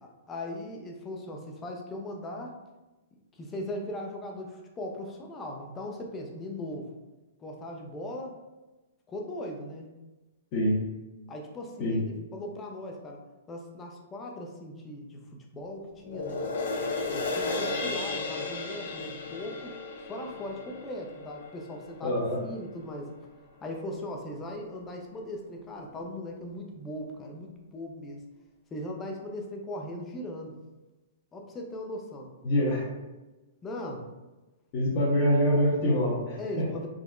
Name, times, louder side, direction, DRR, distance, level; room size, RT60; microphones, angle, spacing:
voice 1, 0.0-2.5 3.4-6.9 7.4-8.4 9.1-9.9 11.3-13.2 13.5-15.2 15.5-16.5 17.0-19.8 20.1-23.1 23.6-28.2 28.7-30.5 31.3-32.3 33.6-34.1 36.4-36.9, left 1 dB, 20° left, 1 dB, 0.5 m, -39 dB
voice 2, 10.5-10.8 11.8-12.0 22.0-22.4 32.4-32.9 34.7-36.7, equal, 45° left, -9 dB, 0.8 m, -25 dB
sound 1, 16.0-22.6 23.1-23.2, left 3 dB, 70° left, 0.4 m, -34 dB
3.6 x 2.0 x 2.4 m, 1.1 s
hypercardioid pair, 135°, 0 cm